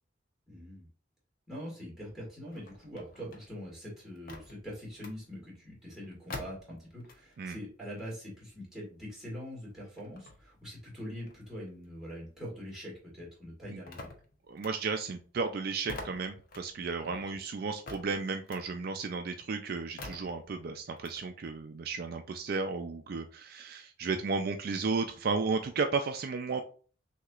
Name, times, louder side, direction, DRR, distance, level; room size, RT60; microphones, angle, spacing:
voice 1, 0.5-0.9 1.5-14.1 17.0-17.4, equal, ahead, -4 dB, 2.2 m, -43 dB
sound 1, 2.4-7.5 7.8-12.7 13.0-21.2, left 2 dB, 50° left, 0.8 m, -49 dB
voice 2, 14.5-26.6, right 4 dB, 50° right, 6 dB, 0.4 m, -34 dB
6.1 x 2.8 x 2.4 m, 0.40 s
head